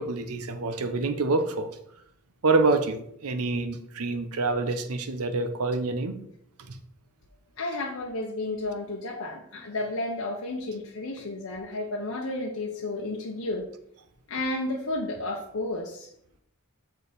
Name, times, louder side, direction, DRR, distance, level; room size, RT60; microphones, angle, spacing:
voice 1, 0.0-1.7 2.4-6.2, right 3 dB, 85° right, 8 dB, 0.7 m, -26 dB
voice 2, 7.6-13.7 14.3-16.1, left 2 dB, 70° left, -1 dB, 0.9 m, -32 dB
6.5 x 4.6 x 5.1 m, 0.71 s
head